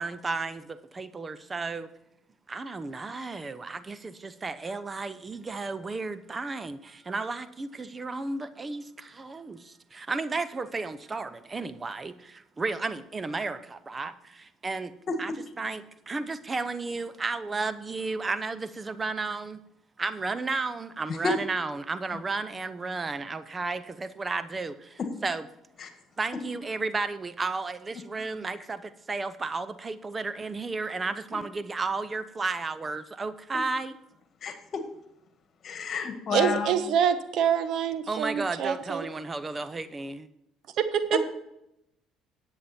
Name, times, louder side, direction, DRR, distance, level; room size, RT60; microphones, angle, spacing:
voice 1, 0.0-1.9 2.5-14.9 15.2-15.3 15.6-19.6 20.0-25.5 26.2-34.0 38.1-40.3, right 3 dB, 25° right, 13 dB, 0.8 m, -33 dB
voice 2, 34.4-34.8 35.6-36.8 41.1-41.2, left 5 dB, 50° left, 7 dB, 1.9 m, -30 dB
voice 3, 36.3-39.0 40.8-41.2, right 8 dB, 65° right, 11 dB, 1.0 m, -26 dB
10.5 x 8.5 x 4.4 m, 0.83 s
supercardioid pair, 70°, 0 cm